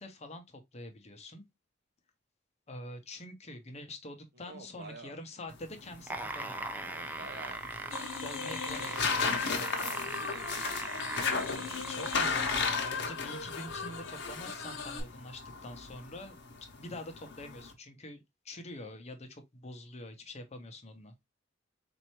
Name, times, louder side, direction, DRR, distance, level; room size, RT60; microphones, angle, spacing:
voice 1, 0.0-1.4 2.7-6.7 8.2-9.4 11.8-16.4 16.8-21.1, left 1 dB, 35° left, 0.8 m, -45 dB
voice 2, 4.4-5.2 6.8-9.0 9.5-11.8, right 3 dB, 60° right, 0.8 m, -50 dB
sound 1, 5.5-17.7, left 5 dB, 65° left, 0.9 m, -36 dB
sound 2, 5.9-12.9 13.7-13.8, right 2 dB, 10° right, 0.4 m, -39 dB
sound 3, 7.9-15.0, left 5 dB, 90° left, 0.8 m, -39 dB
4.2 x 2.6 x 2.9 m
head